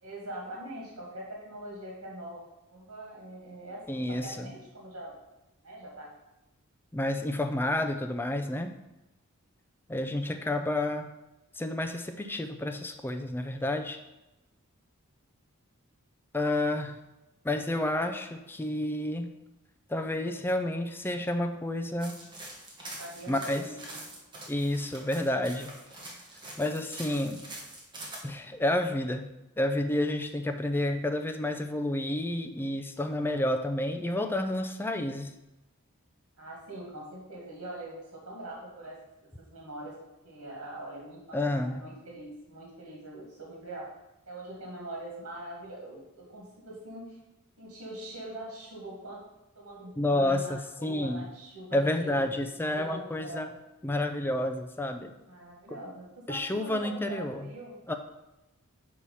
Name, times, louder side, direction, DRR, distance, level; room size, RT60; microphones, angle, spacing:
voice 1, 0.0-2.4 2.7-5.1 5.6-6.1 23.0-24.0 30.7-30.9 36.4-39.9 40.2-43.9 44.3-47.2 47.6-49.2 49.6-52.4 52.8-53.4 55.3-57.8, right 1 dB, 70° right, -3 dB, 1.9 m, -43 dB
voice 2, 3.9-4.5 6.9-8.7 9.9-11.1 11.6-14.0 16.3-17.0 17.4-19.3 19.9-22.2 23.3-23.6 24.5-25.7 26.6-27.4 28.2-29.3 29.6-35.3 41.3-41.8 50.0-51.3 51.7-53.5 53.8-55.1 56.3-57.5 57.9-58.0, left 1 dB, 10° left, 6 dB, 0.4 m, -30 dB
sound 1, 22.0-28.2, right 1 dB, 20° right, 1.3 m, -44 dB
5.7 x 4.8 x 5.4 m, 0.97 s
head